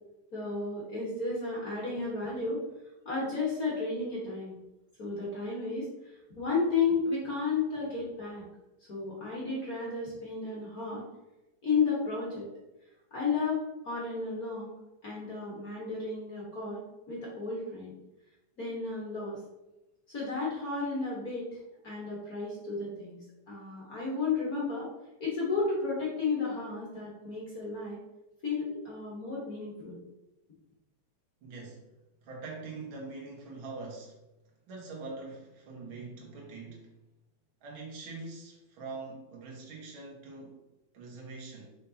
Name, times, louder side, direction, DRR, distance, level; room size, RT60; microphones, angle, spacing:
voice 1, 0.3-2.6 3.0-4.5 5.0-8.4 8.9-11.0 11.6-12.5 13.1-14.7 15.0-16.8 17.1-17.9 18.6-19.4 20.1-21.6 21.8-24.9 25.2-28.0 28.4-30.0, left 4 dB, 40° left, -5 dB, 1.3 m, -33 dB
voice 2, 31.4-31.9 32.2-34.2 34.7-36.9 37.6-40.6 40.9-41.8, right 3 dB, 50° right, -2 dB, 1.8 m, -43 dB
6.2 x 5.4 x 2.9 m, 0.96 s
omnidirectional pair, 3.8 m